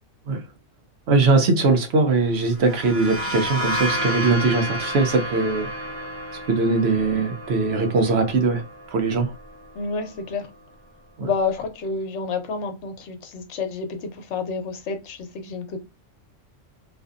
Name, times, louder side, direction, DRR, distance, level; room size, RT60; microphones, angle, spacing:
voice 1, 1.1-5.7 6.5-8.6 8.9-9.3 11.2-11.3, right 3 dB, 65° right, 0.8 m, -20 dB
sound 1, 2.5-10.1, equal, 10° right, 1.2 m, -31 dB
voice 2, 9.7-10.5 11.2-15.8, left 4 dB, 70° left, 1.0 m, -29 dB
2.6 x 2.5 x 2.3 m
omnidirectional pair, 1.3 m